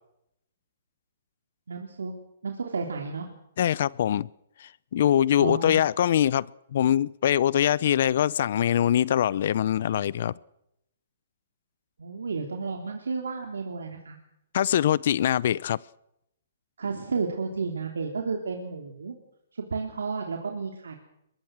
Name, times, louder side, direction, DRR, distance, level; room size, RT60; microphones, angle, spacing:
voice 1, 1.7-2.1 2.4-3.3 5.4-5.9 12.0-14.2 16.8-19.1 19.5-21.0, right 4 dB, 85° right, 3.4 m, -32 dB
voice 2, 3.6-4.3 4.6-6.5 6.7-10.3 14.5-15.8, left 10 dB, 60° left, 0.7 m, -23 dB
22.5 x 22.0 x 6.4 m
hypercardioid pair, 140°, 0 cm